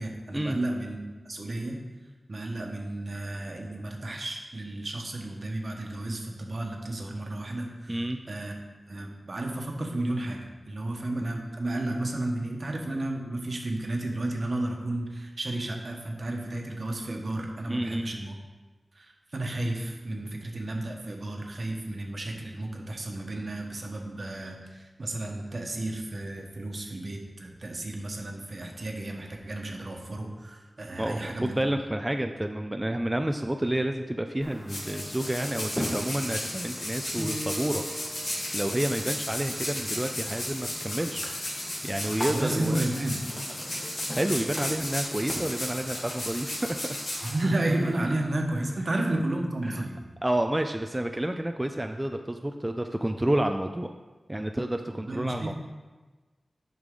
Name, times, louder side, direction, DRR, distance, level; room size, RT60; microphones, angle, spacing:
voice 1, 0.0-1.8 2.3-8.0 8.3-8.5 8.9-18.3 18.9-31.6 42.2-43.2 47.2-50.0 54.9-55.5, right 1 dB, 60° right, 1 dB, 1.3 m, -32 dB
voice 2, 7.9-8.2 17.7-18.1 31.0-41.3 41.6-42.8 44.1-47.0 49.6-49.9 50.2-53.9 54.3-55.5, right 1 dB, 20° right, 5 dB, 0.4 m, -30 dB
sound 1, 34.4-48.0, left 1 dB, 70° left, 2.5 m, -35 dB
sound 2, 34.4-39.0 39.3-39.7 40.0-40.5 40.8-46.1, equal, 10° left, 1.6 m, -39 dB
8.0 x 5.4 x 3.8 m, 1.3 s
cardioid pair, 40°, 0 cm